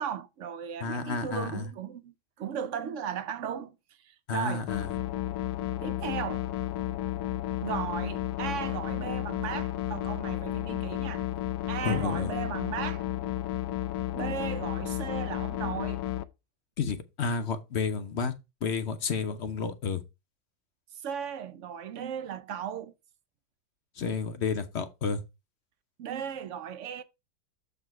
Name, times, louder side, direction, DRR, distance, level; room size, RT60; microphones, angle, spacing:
voice 1, 0.0-3.7 4.0-4.7 5.8-6.5 7.6-11.3 11.7-13.1 14.1-16.0 21.0-22.9 26.0-27.0, right 8 dB, 60° right, 0.9 m, -36 dB
voice 2, 0.8-1.6 4.3-4.9 11.8-12.3 16.8-18.3 18.6-20.0 24.0-25.2, left 5 dB, 55° left, 0.8 m, -31 dB
sound 1, 4.7-16.2, left 14 dB, 85° left, 1.2 m, -32 dB
7.1 x 4.6 x 4.6 m
omnidirectional pair, 1.7 m